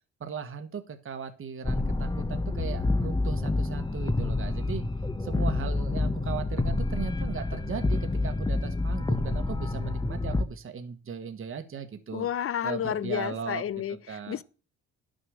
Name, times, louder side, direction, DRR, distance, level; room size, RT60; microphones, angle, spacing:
voice 1, 0.2-4.8 5.2-12.3 12.6-13.6 13.9-14.4, right 6 dB, 45° right, 1.4 m, -38 dB
sound 1, 1.6-10.4, left 2 dB, 15° left, 0.9 m, -28 dB
voice 2, 12.1-14.0 14.3-14.4, left 9 dB, 45° left, 0.7 m, -30 dB
11.0 x 6.4 x 6.4 m
cardioid pair, 90°, 30 cm